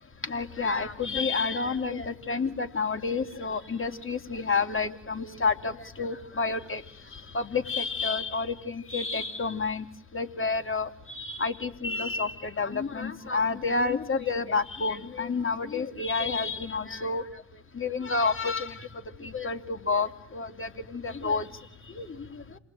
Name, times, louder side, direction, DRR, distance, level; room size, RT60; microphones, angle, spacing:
voice 1, 0.3-6.8 7.3-9.8 10.1-10.9 11.1-17.2 17.8-18.8 19.2-21.4 22.0-22.1, left 4 dB, 30° left, 7 dB, 3.1 m, -29 dB
29.5 x 20.0 x 9.2 m, 0.62 s
supercardioid pair, 80°, 44 cm